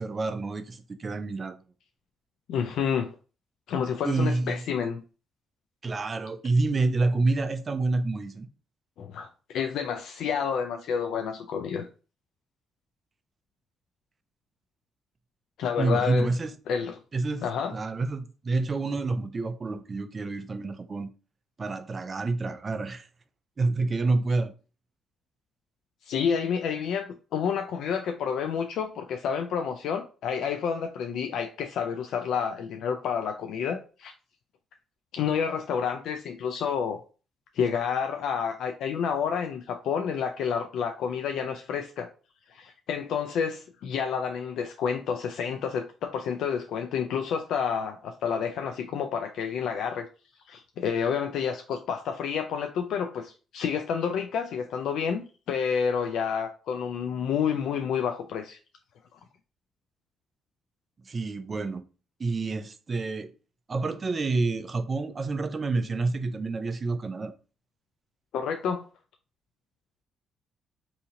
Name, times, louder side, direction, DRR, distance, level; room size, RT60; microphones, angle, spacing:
voice 1, 0.0-1.6 4.0-4.6 5.8-8.5 15.8-16.5 17.1-17.4 17.7-21.1 21.6-23.1 23.6-24.5 61.0-61.8 62.2-63.3 63.7-67.3, right 3 dB, 35° right, 0.5 m, -28 dB
voice 2, 2.5-3.1 3.7-5.0 9.0-11.9 15.6-16.3 16.7-17.0 17.4-17.7 26.0-34.1 35.1-37.0 37.5-42.1 42.5-50.1 50.5-58.6 68.3-68.9, left 7 dB, 80° left, 0.3 m, -29 dB
2.8 x 2.8 x 3.7 m
cardioid pair, 90°, 0 cm